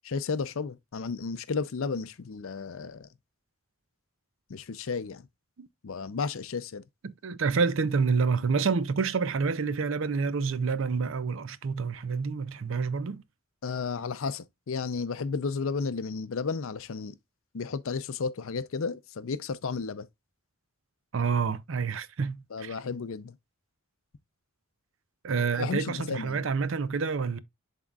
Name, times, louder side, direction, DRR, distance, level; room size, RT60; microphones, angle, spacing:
voice 1, 0.1-3.1 4.5-5.2 5.8-6.8 13.6-17.2 17.5-20.1 22.5-23.4 25.5-26.5, left 5 dB, 70° left, 0.5 m, -33 dB
voice 2, 7.0-13.2 21.1-22.8 25.2-27.4, right 5 dB, 65° right, 0.5 m, -28 dB
11.0 x 3.7 x 2.3 m
head